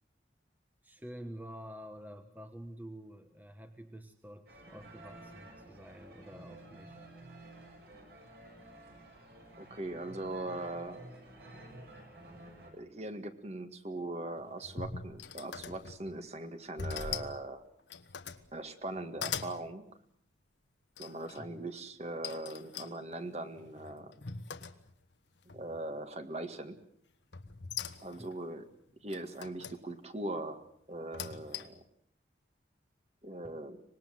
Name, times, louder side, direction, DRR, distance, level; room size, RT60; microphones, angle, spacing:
voice 1, 0.8-7.1 21.4-21.7 28.1-28.3 33.4-33.6, equal, 10° right, 7 dB, 1.2 m, -48 dB
sound 1, 4.5-12.7, right 1 dB, 60° right, 6.7 m, -52 dB
voice 2, 9.6-11.0 12.7-17.6 18.5-19.9 21.0-24.1 25.5-26.8 28.0-28.7 29.0-31.8 33.2-33.8, right 2 dB, 35° right, 8 dB, 1.9 m, -40 dB
sound 2, 14.4-16.2 16.8-17.4 17.8-18.5 18.9-19.6 21.0-21.4 22.2-25.1 25.5-26.0 27.3-28.3 29.1-29.8 30.9-31.9, left 6 dB, 85° left, 1.5 m, -42 dB
25.0 x 21.0 x 7.7 m, 0.68 s
head